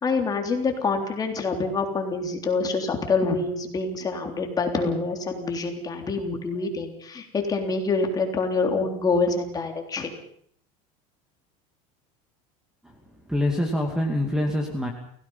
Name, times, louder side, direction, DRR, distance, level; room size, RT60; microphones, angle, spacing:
voice 1, 0.0-10.1, left 4 dB, 20° left, 3 dB, 3.5 m, -26 dB
voice 2, 13.3-14.9, left 1 dB, 5° right, 3 dB, 2.4 m, -25 dB
29.5 x 17.0 x 5.7 m, 0.62 s
supercardioid pair, 150°, 18 cm